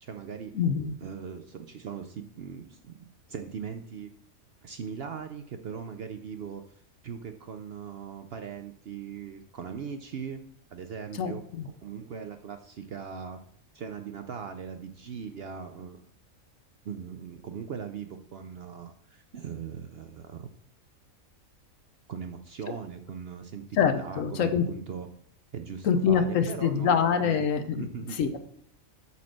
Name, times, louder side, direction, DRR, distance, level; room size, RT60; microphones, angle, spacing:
voice 1, 0.0-0.5 1.0-4.1 4.6-6.6 7.0-10.4 10.7-13.4 13.7-16.0 16.8-20.5 22.1-23.6 24.0-25.1 25.5-27.4 27.8-28.2, right 6 dB, 60° right, 7 dB, 0.7 m, -40 dB
voice 2, 0.5-0.9 11.2-11.7 22.7-22.8 23.8-24.6 25.8-27.9 28.1-28.4, left 7 dB, 70° left, 9 dB, 1.1 m, -25 dB
8.6 x 4.2 x 6.3 m, 0.65 s
omnidirectional pair, 1.5 m